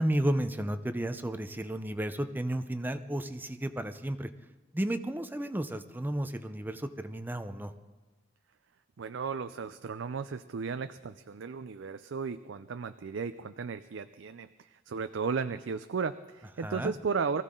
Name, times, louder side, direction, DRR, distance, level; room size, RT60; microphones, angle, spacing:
voice 1, 0.0-4.3 4.7-7.7 16.6-16.9, right 1 dB, 10° right, 9 dB, 0.6 m, -32 dB
voice 2, 9.0-17.4, right 5 dB, 75° right, 10 dB, 0.5 m, -35 dB
23.5 x 15.0 x 3.8 m, 1.2 s
head